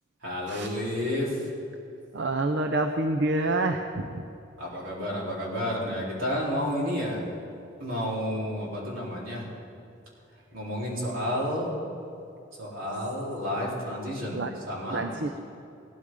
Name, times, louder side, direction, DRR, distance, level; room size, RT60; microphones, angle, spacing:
voice 1, 0.2-1.5 4.6-7.3 7.8-9.5 10.5-11.7 12.6-15.1, equal, 80° right, -5 dB, 3.9 m, -31 dB
voice 2, 2.1-4.2 14.3-14.5 14.9-15.3, right 2 dB, 60° right, 5 dB, 0.6 m, -27 dB
17.0 x 13.0 x 3.8 m, 2.6 s
head